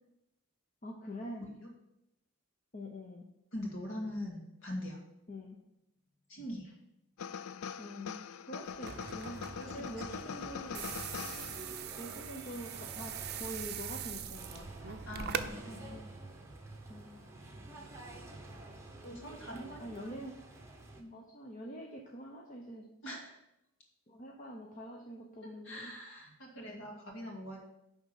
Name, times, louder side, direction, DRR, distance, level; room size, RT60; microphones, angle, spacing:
voice 1, 0.8-1.4 2.7-3.3 5.3-5.6 7.8-11.0 12.0-15.4 16.9-17.2 19.8-20.4 21.1-22.9 24.1-25.9, equal, 35° left, -1 dB, 0.8 m, -45 dB
voice 2, 3.5-5.0 6.3-6.7 9.6-10.1 15.1-16.0 19.0-20.2 21.0-21.1 23.0-23.3 25.6-27.6, left 1 dB, 60° left, -1 dB, 2.2 m, -43 dB
sound 1, 7.2-12.0, left 7 dB, 80° left, 0.4 m, -43 dB
sound 2, 8.6-15.5, right 9 dB, 50° right, 0.5 m, -42 dB
sound 3, 8.8-21.0, right 2 dB, 15° right, 0.9 m, -49 dB
10.5 x 3.7 x 5.7 m, 0.84 s
head